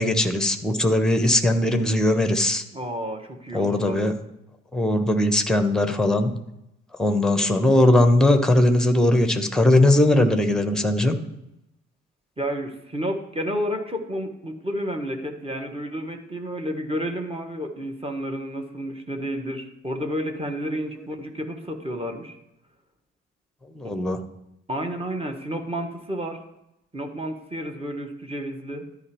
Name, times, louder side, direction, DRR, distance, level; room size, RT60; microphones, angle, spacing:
voice 1, 0.0-2.6 3.5-4.1 4.7-6.3 7.0-11.2 23.8-24.2, left 1 dB, ahead, 7 dB, 1.1 m, -19 dB
voice 2, 2.7-4.0 12.4-22.4 23.8-23.9 24.7-26.4 26.9-28.8, equal, 15° right, 4 dB, 1.5 m, -31 dB
13.0 x 5.2 x 3.1 m, 0.85 s
figure-of-eight pair, 45°, 37 cm